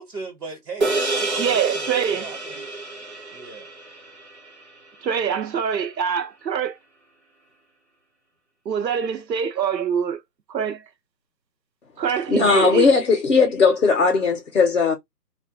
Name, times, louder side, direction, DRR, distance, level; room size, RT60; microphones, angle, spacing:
voice 1, 0.0-2.7 3.3-3.7, right 4 dB, 65° right, 1.1 m, -38 dB
sound 1, 0.8-5.4, right 2 dB, 45° right, 0.6 m, -29 dB
voice 2, 1.4-2.3 5.0-6.7 8.7-10.2 10.5-10.8 12.0-12.9, right 7 dB, 85° right, 0.7 m, -24 dB
voice 3, 12.3-14.9, left 4 dB, 50° left, 0.6 m, -18 dB
2.2 x 2.1 x 2.6 m
figure-of-eight pair, 170°, 50 cm